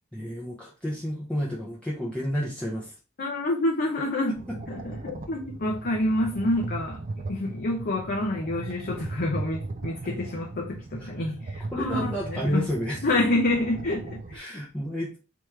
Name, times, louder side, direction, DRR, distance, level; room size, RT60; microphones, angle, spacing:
voice 1, 0.1-3.0 4.5-4.6 11.0-11.1 11.7-13.0 14.3-15.2, equal, 5° left, 0.7 m, -30 dB
voice 2, 3.2-7.0 7.3-12.7 13.0-14.4, left 1 dB, 45° left, 0.7 m, -28 dB
sound 1, 4.4-14.4, right 2 dB, 35° right, 0.4 m, -37 dB
3.5 x 3.0 x 3.2 m
head